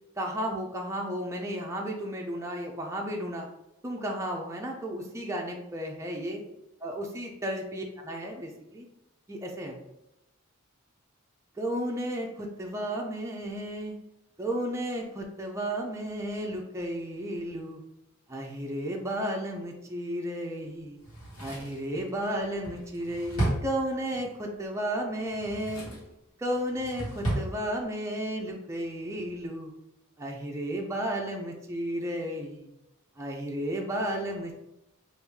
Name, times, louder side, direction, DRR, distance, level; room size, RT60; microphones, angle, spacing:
voice 1, 0.2-3.5 3.8-6.4 6.8-8.9 9.3-9.8 11.6-14.0 14.4-17.8 18.3-21.0 21.4-25.9 26.4-29.7 30.2-32.7 33.2-34.5, equal, 15° right, 0 dB, 0.4 m, -33 dB
Drawer open or close, 21.0-24.3 25.2-26.1 26.5-27.5 27.8-27.9, right 1 dB, 75° left, 1.3 m, -33 dB
3.4 x 2.5 x 3.1 m, 0.87 s
head